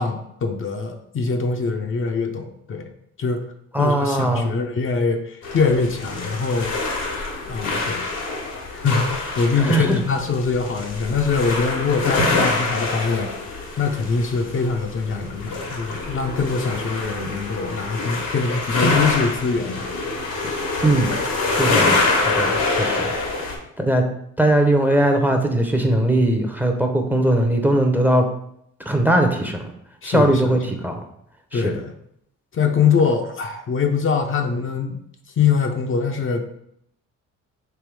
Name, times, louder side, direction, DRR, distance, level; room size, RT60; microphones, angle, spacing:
voice 1, 0.0-2.9 3.2-3.4 3.8-6.8 7.5-8.1 8.7-13.3 13.8-19.9 30.0-30.6 31.5-31.9 32.5-35.0 35.4-36.4, left 5 dB, 45° left, 4 dB, 0.6 m, -23 dB
voice 2, 3.7-4.5 9.6-10.0 20.8-21.1 21.5-23.1 23.8-24.0 24.4-28.3 28.9-29.7 30.0-31.0 31.5-31.8, right 1 dB, 5° right, 3 dB, 0.7 m, -20 dB
sound 1, 5.4-23.6, left 3 dB, 85° left, 1.4 m, -25 dB
3.4 x 3.3 x 4.7 m, 0.72 s
cardioid pair, 90°, 30 cm